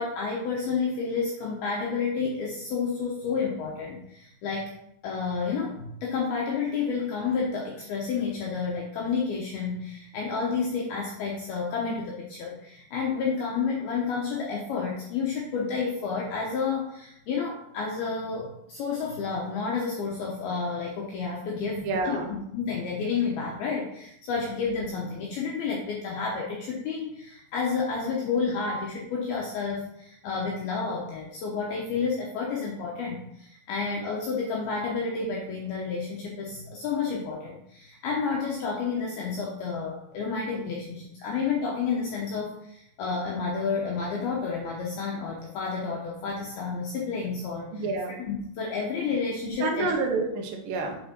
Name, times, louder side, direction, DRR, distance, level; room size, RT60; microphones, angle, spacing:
voice 1, 0.0-4.7 5.0-47.9 48.3-49.9, left 5 dB, 75° left, -2 dB, 2.2 m, -30 dB
voice 2, 21.7-22.3 47.7-48.2 49.6-51.0, right 3 dB, 70° right, 1 dB, 2.2 m, -28 dB
8.3 x 4.5 x 4.4 m, 0.77 s
omnidirectional pair, 5.6 m